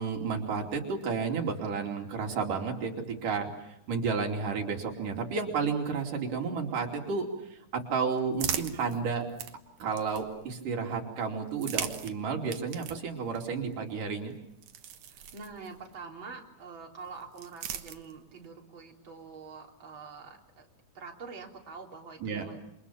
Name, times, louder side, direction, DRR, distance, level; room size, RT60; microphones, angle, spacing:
voice 1, 0.0-2.9 3.2-9.3 9.8-14.3 22.2-22.5, right 5 dB, 90° right, 2 dB, 4.6 m, -32 dB
sound 1, 7.6-10.6 11.4-16.0 17.0-18.5, right 9 dB, 70° right, 2.6 m, -41 dB
voice 2, 15.1-20.7 20.9-22.6, right 5 dB, 40° right, 0 dB, 4.2 m, -45 dB
28.0 x 26.0 x 7.2 m, 0.81 s
omnidirectional pair, 3.6 m